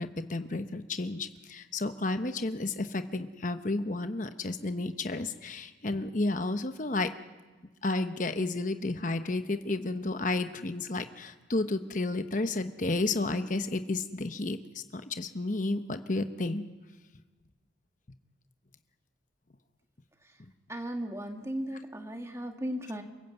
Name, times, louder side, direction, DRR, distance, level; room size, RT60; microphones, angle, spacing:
voice 1, 0.0-7.1 7.8-16.6 20.4-20.5, left 2 dB, 40° left, 9 dB, 1.0 m, -32 dB
voice 2, 20.7-23.0, equal, 15° right, 4 dB, 1.6 m, -36 dB
28.5 x 15.0 x 8.2 m, 1.3 s
head